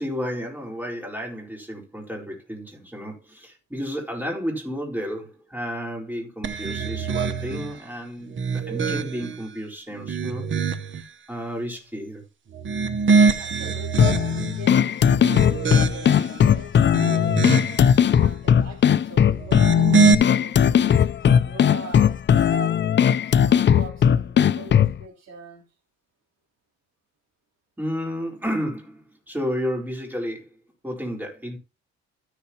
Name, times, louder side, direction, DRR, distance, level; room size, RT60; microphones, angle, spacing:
voice 1, 0.0-10.5 11.3-12.2 27.8-30.5 30.8-31.6, equal, 5° right, 4.2 m, -32 dB
sound 1, 6.4-7.7 8.3-9.4 9.9-11.0 12.5-14.6 15.1-16.3 16.8-17.9 19.4-20.1, right 4 dB, 40° right, 0.9 m, -23 dB
voice 2, 13.4-17.5 17.9-22.8 23.3-25.6, right 4 dB, 60° right, 3.4 m, -42 dB
sound 2, 14.0-25.0, left 8 dB, 40° left, 0.5 m, -18 dB
13.0 x 6.8 x 2.9 m
cardioid pair, 90°, 30 cm